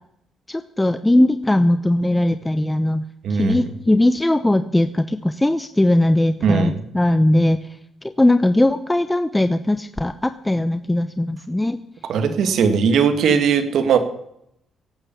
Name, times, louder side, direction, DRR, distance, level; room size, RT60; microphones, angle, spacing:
voice 1, 0.5-3.0 3.3-7.6 8.2-11.8, left 1 dB, 10° left, 10 dB, 0.8 m, -19 dB
voice 2, 3.2-3.6 6.4-6.7 12.1-14.0, right 6 dB, 70° right, 9 dB, 2.0 m, -18 dB
17.0 x 8.7 x 7.1 m, 0.74 s
cardioid pair, 90°, 0 cm